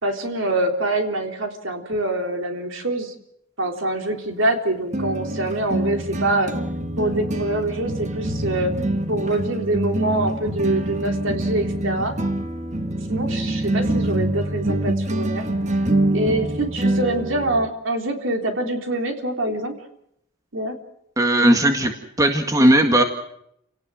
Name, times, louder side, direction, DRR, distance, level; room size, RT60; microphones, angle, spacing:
voice 1, 0.0-3.1 3.6-6.5 7.0-8.7 9.1-12.2 13.1-15.4 16.1-19.7 20.5-20.8, right 2 dB, 60° right, 4 dB, 3.7 m, -25 dB
sound 1, 4.1-4.2 4.9-17.7, right 1 dB, 35° right, 1.6 m, -25 dB
voice 2, 21.2-23.0, right 1 dB, 15° right, 5 dB, 1.8 m, -17 dB
29.0 x 18.5 x 6.3 m, 0.72 s
head